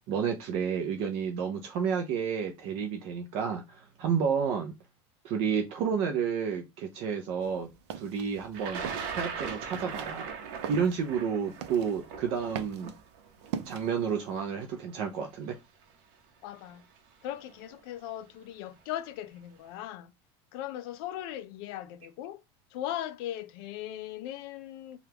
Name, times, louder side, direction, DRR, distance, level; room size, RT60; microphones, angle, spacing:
voice 1, 0.0-4.7 5.2-7.7 7.9-8.8 9.1-10.3 10.7-12.9 13.7-15.5, right 6 dB, 40° right, 0.4 m, -30 dB
sound 1, 7.4-14.4, right 8 dB, 85° right, 0.5 m, -43 dB
Thunder, 8.5-14.6 15.5-15.6 16.7-17.0 17.3-17.8, right 6 dB, 55° right, 0.8 m, -39 dB
voice 2, 16.4-16.8 17.2-20.1 20.5-22.4 22.7-25.0, left 12 dB, 55° left, 0.4 m, -38 dB
2.8 x 2.3 x 3.4 m
cardioid pair, 175°, 14 cm